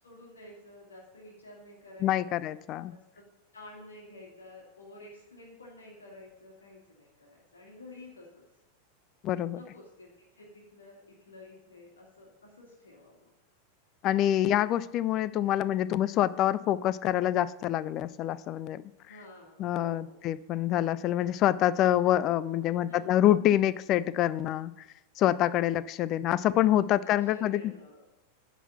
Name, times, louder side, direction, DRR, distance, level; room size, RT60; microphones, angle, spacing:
voice 1, 0.0-2.4 2.9-3.3 3.5-8.4 9.5-13.3 19.1-20.2 22.7-23.2 27.0-28.1, left 2 dB, 70° left, -2 dB, 1.9 m, -51 dB
voice 2, 2.0-2.9 9.2-9.6 14.0-18.8 19.6-24.7 25.2-27.6, left 12 dB, 35° left, 18 dB, 0.3 m, -26 dB
10.0 x 4.1 x 6.8 m, 0.91 s
figure-of-eight pair, 90°, 0 cm